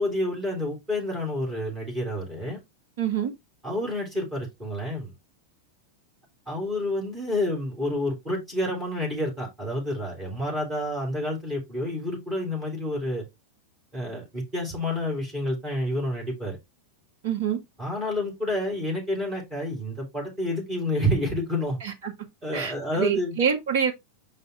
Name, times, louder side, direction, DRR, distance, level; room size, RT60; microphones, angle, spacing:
voice 1, 0.0-2.6 3.6-5.1 6.5-13.2 13.9-16.6 17.8-21.8 22.4-23.4, left 1 dB, 20° right, 3.7 m, -29 dB
voice 2, 3.0-3.3 17.2-17.6 21.8-22.1 22.5-23.9, right 7 dB, 55° right, 1.5 m, -26 dB
5.6 x 5.4 x 3.4 m
figure-of-eight pair, 90°, 0 cm